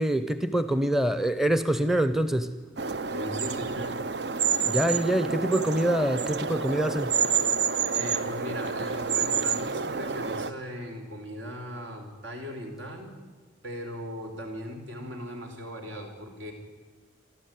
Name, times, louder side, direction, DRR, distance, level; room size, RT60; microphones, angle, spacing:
voice 1, 0.0-2.5 4.7-7.1, right 1 dB, ahead, 12 dB, 0.7 m, -25 dB
sound 1, 2.8-10.5, right 6 dB, 60° right, 0.6 m, -28 dB
voice 2, 3.1-3.9 7.9-13.1 13.6-16.5, equal, 80° right, 3 dB, 4.6 m, -38 dB
28.5 x 13.0 x 9.5 m, 1.4 s
head